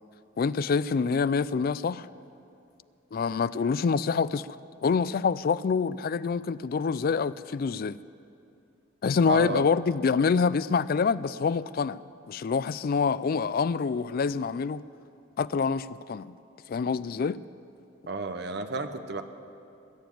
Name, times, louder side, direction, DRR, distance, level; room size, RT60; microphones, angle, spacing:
voice 1, 0.4-2.1 3.1-4.5 4.8-8.0 9.0-14.8 15.4-16.3 16.7-17.4, left 5 dB, 45° left, 0.3 m, -26 dB
voice 2, 9.3-9.7 18.1-19.2, right 3 dB, 55° right, 0.8 m, -32 dB
21.0 x 7.1 x 9.2 m
head